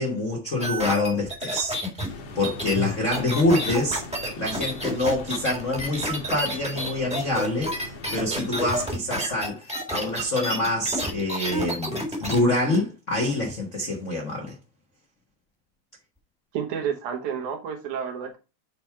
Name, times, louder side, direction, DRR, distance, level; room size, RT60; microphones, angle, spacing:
voice 1, 0.0-4.0 4.4-14.6, left 2 dB, 85° left, 0.6 m, -26 dB
sound 1, 0.6-12.4 12.7-12.8, equal, 5° right, 0.9 m, -30 dB
sound 2, 2.1-9.0, left 3 dB, 70° left, 2.4 m, -41 dB
voice 2, 16.5-18.4, right 7 dB, 80° right, 2.7 m, -30 dB
7.7 x 3.6 x 4.4 m
omnidirectional pair, 3.4 m